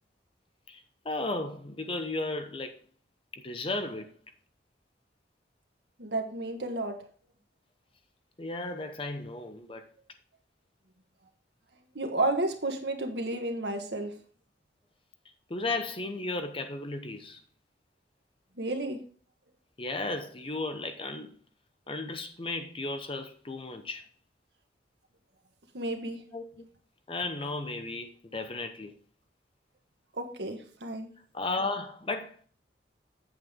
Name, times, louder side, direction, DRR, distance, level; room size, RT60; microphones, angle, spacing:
voice 1, 0.7-2.8 3.3-4.1 8.4-9.8 15.5-17.4 19.8-21.3 21.9-24.1 26.3-26.6 27.1-29.0 31.3-32.4, left 2 dB, 30° left, 0.8 m, -34 dB
voice 2, 6.0-7.0 11.9-14.1 18.5-19.0 25.7-26.2 30.1-31.1, right 2 dB, 70° right, 1.5 m, -32 dB
8.2 x 8.0 x 3.6 m
head